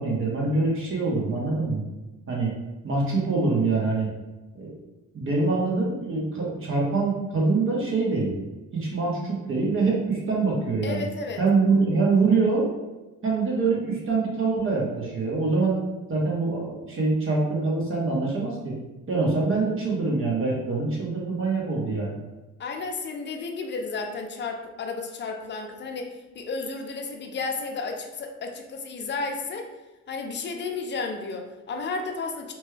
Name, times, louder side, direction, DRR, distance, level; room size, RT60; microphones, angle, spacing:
voice 1, 0.0-1.8 2.3-2.5 2.8-4.1 4.5-4.7 5.1-8.3 8.7-11.0 11.4-12.7 13.2-15.8 16.1-18.8 19.1-22.2, right 3 dB, 45° right, -3 dB, 0.9 m, -24 dB
voice 2, 10.8-11.4 22.6-29.7 30.1-32.5, left 4 dB, 35° left, 3 dB, 0.5 m, -32 dB
2.9 x 2.2 x 3.2 m, 1.1 s
cardioid pair, 90°, 30 cm